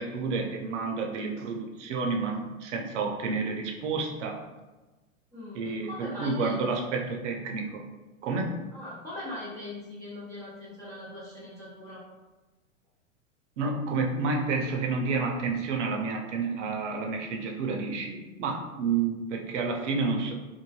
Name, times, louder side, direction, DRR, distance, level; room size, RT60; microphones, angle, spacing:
voice 1, 0.0-4.4 5.5-7.8 8.2-8.6 13.6-20.3, right 4 dB, 60° right, 1 dB, 0.6 m, -30 dB
voice 2, 5.3-6.7 8.7-12.0, left 1 dB, 10° left, -9 dB, 0.3 m, -40 dB
3.1 x 2.1 x 2.3 m, 1.2 s
hypercardioid pair, 105°, 40 cm